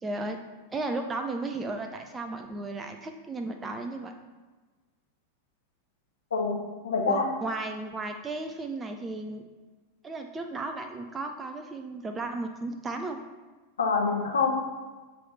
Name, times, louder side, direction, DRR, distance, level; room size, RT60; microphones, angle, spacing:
voice 1, 0.0-0.4 0.7-4.1 7.1-9.4 10.0-13.2, right 2 dB, 15° right, 5 dB, 0.4 m, -34 dB
voice 2, 6.3-7.2 13.8-14.5, left 5 dB, 70° left, 2 dB, 0.9 m, -26 dB
7.7 x 3.3 x 4.1 m, 1.3 s
figure-of-eight pair, 90°, 0 cm